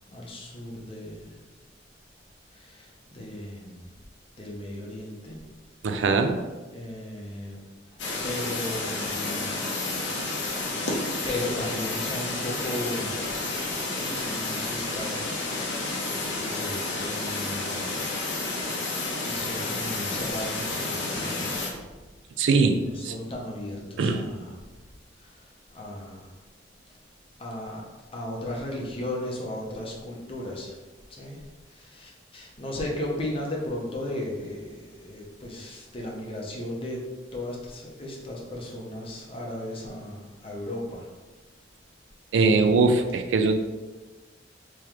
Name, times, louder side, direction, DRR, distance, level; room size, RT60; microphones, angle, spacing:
voice 1, 0.1-1.4 2.5-3.9 4.4-5.4 6.7-9.6 11.2-13.5 13.9-15.9 16.3-17.9 19.3-21.6 22.4-22.5 22.8-24.6 25.2-26.3 27.4-27.8 28.1-30.8 31.1-41.1, left 1 dB, 30° left, -2 dB, 0.7 m, -36 dB
voice 2, 5.8-6.4 22.4-22.8 23.0-23.1 24.0-24.2 42.3-43.6, right 4 dB, 70° right, 6 dB, 0.3 m, -21 dB
sound 1, 8.0-21.7, left 2 dB, 70° left, 0.7 m, -30 dB
3.6 x 3.0 x 3.0 m, 1.2 s
head